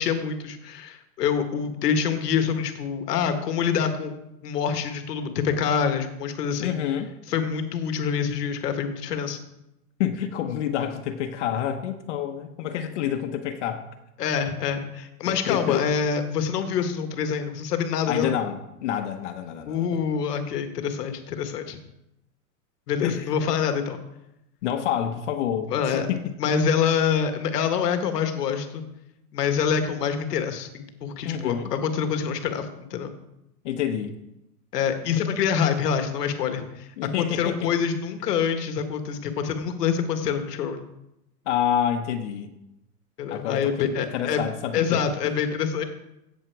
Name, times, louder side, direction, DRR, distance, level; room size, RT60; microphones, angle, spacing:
voice 1, 0.0-4.1 4.4-6.7 7.3-9.4 14.2-18.3 19.7-21.8 22.9-24.0 25.7-26.1 26.4-28.8 29.3-33.1 34.7-36.9 37.2-40.8 43.2-44.4 44.7-45.8, left 7 dB, 85° left, 7 dB, 1.6 m, -26 dB
voice 2, 6.6-7.1 10.0-13.9 15.3-15.9 18.1-20.0 23.0-23.3 24.6-26.3 31.2-31.7 33.6-34.1 37.0-37.7 41.5-42.5 43.3-45.0, left 9 dB, 50° left, 6 dB, 1.0 m, -28 dB
16.5 x 7.4 x 4.7 m, 0.89 s
supercardioid pair, 165°, 46 cm